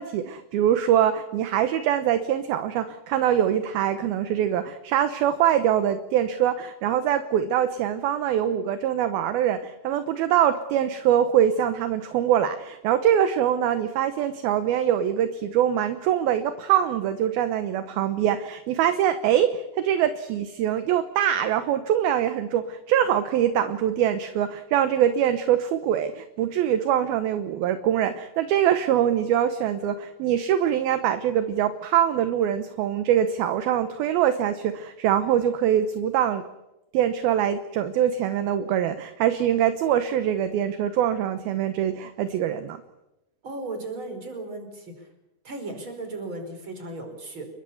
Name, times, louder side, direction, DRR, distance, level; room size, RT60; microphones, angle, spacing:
voice 1, 0.0-36.4 36.9-42.8, right 10 dB, 70° right, 10 dB, 2.6 m, -23 dB
voice 2, 43.4-45.1 45.4-47.5, right 2 dB, 25° right, 5 dB, 5.4 m, -36 dB
29.0 x 22.5 x 7.1 m, 0.94 s
omnidirectional pair, 5.1 m